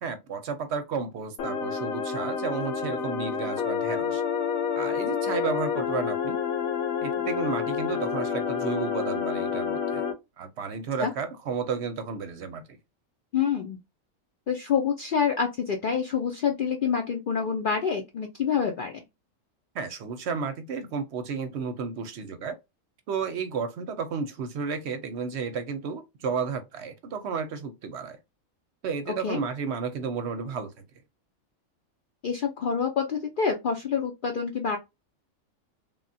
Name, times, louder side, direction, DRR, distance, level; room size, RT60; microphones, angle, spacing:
voice 1, 0.0-4.2 4.7-6.4 7.0-10.1 10.4-12.6 19.7-22.6 23.1-28.2 28.8-30.8, right 5 dB, 65° right, 0.8 m, -32 dB
sound 1, 1.4-10.1, left 7 dB, 90° left, 1.1 m, -29 dB
voice 2, 13.3-13.8 14.5-19.0 29.2-29.4 32.2-34.8, left 6 dB, 65° left, 0.5 m, -27 dB
3.3 x 2.2 x 2.6 m
omnidirectional pair, 1.4 m